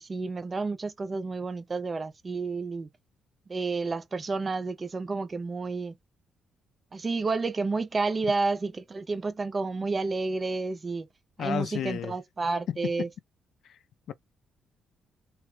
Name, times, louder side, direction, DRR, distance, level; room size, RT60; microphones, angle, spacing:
voice 1, 0.0-2.9 3.5-5.9 6.9-11.1 11.4-13.1, right 3 dB, 25° right, 0.3 m, -30 dB
voice 2, 11.4-12.2 12.7-13.1 13.6-13.8 14.1-14.2, left 9 dB, 60° left, 0.3 m, -32 dB
2.9 x 2.2 x 3.0 m
cardioid pair, 160°, 0 cm